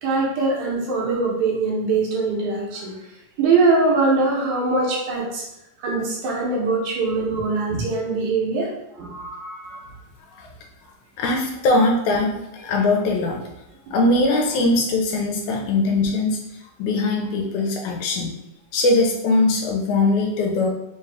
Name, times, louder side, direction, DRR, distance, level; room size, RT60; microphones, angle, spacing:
voice 1, 0.0-2.9 3.4-5.4 5.8-8.7 9.0-9.8, right 3 dB, 70° right, -3 dB, 2.1 m, -22 dB
voice 2, 11.2-13.5 13.9-16.4 16.8-18.3 18.7-20.7, left 2 dB, 80° left, 1 dB, 1.9 m, -21 dB
4.9 x 2.3 x 3.3 m, 0.87 s
omnidirectional pair, 3.6 m